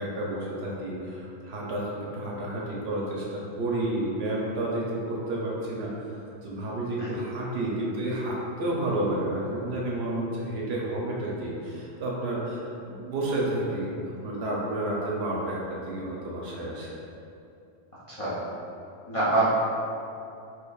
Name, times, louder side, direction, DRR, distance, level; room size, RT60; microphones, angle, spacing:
voice 1, 0.0-13.9 14.2-16.9, right 1 dB, 65° right, -4 dB, 0.8 m, -31 dB
voice 2, 17.9-18.3 19.1-19.5, right 2 dB, 35° left, -11 dB, 0.6 m, -26 dB
4.5 x 2.8 x 2.3 m, 2.6 s
omnidirectional pair, 1.2 m